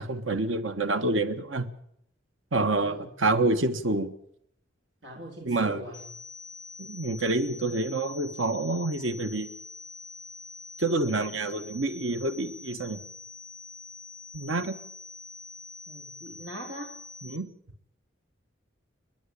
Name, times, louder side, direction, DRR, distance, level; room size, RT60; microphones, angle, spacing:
voice 1, 0.0-1.7 2.5-4.1 5.4-5.8 6.8-9.5 10.8-13.0 14.3-14.7 17.2-17.5, right 2 dB, 85° right, 10 dB, 1.4 m, -27 dB
voice 2, 2.7-3.1 5.0-6.0 15.9-16.9, equal, 65° right, 0 dB, 3.7 m, -42 dB
sound 1, 5.9-17.4, left 4 dB, ahead, 2.1 m, -45 dB
29.0 x 11.0 x 8.5 m, 0.73 s
head